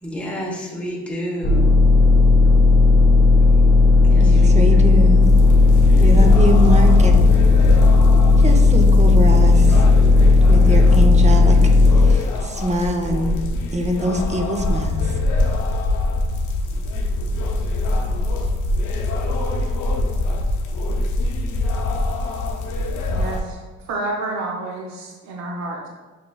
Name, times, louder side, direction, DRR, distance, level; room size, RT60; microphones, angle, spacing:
voice 1, 0.0-1.7 4.1-4.8 5.9-6.3, equal, 5° left, -3 dB, 1.0 m, -30 dB
sound 1, 1.4-12.1, left 3 dB, 35° left, 0.6 m, -13 dB
voice 2, 4.2-5.3 6.0-7.2 8.4-9.8 10.5-11.6 12.0-13.3 13.7-15.0, right 1 dB, 25° right, 3 dB, 0.6 m, -23 dB
sound 2, 5.2-23.4, left 2 dB, 75° left, 0.6 m, -23 dB
voice 3, 23.1-23.6 23.9-25.9, right 2 dB, 65° right, -1 dB, 0.7 m, -29 dB
6.3 x 2.9 x 2.3 m, 1.3 s
cardioid pair, 90°, 30 cm